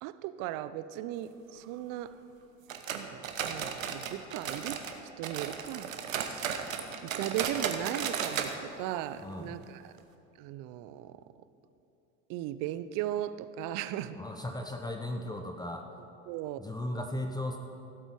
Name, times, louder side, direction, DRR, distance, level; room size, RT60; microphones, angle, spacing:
voice 1, 0.0-2.1 2.9-6.7 7.0-9.9 10.4-11.1 12.3-14.2 16.3-16.6, right 12 dB, 55° right, 14 dB, 0.7 m, -37 dB
sound 1, 2.7-5.0 5.2-8.5 8.8-8.9 9.3-9.4 10.0-10.1, right 7 dB, 85° right, 0.9 m, -35 dB
voice 2, 9.2-9.6 14.1-15.9 16.6-17.6, left 1 dB, 10° left, 4 dB, 0.8 m, -36 dB
15.5 x 8.0 x 4.6 m, 2.7 s
hypercardioid pair, 80°, 39 cm